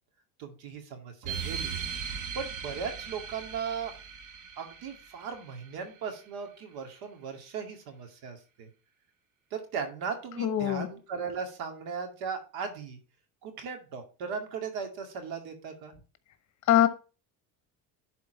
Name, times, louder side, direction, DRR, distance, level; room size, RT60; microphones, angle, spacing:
voice 1, 0.4-1.8 2.1-3.9 4.6-8.7 9.5-13.0 13.4-16.0, right 6 dB, 70° right, 5 dB, 2.3 m, -37 dB
sound 1, 1.2-6.3, right 7 dB, 50° right, 1.5 m, -39 dB
voice 2, 10.4-10.9 16.7-16.9, left 11 dB, 45° left, 11 dB, 1.3 m, -22 dB
11.5 x 4.4 x 4.4 m, 0.34 s
cardioid pair, 120°, 39 cm